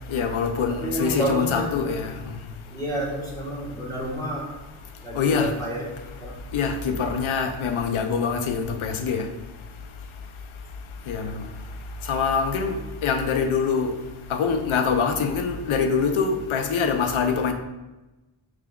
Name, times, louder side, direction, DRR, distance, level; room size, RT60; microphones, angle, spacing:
voice 1, 0.1-2.1 5.1-5.5 6.5-9.2 11.1-11.4 12.1-12.8 13.0-13.9 14.3-17.5, left 5 dB, 90° left, 6 dB, 0.6 m, -24 dB
voice 2, 0.7-2.0 2.7-4.5 5.0-5.9 6.2-6.4, right 1 dB, 10° left, -6 dB, 1.2 m, -30 dB
4.7 x 3.7 x 2.2 m, 1.1 s
wide cardioid pair, 90°, 47 cm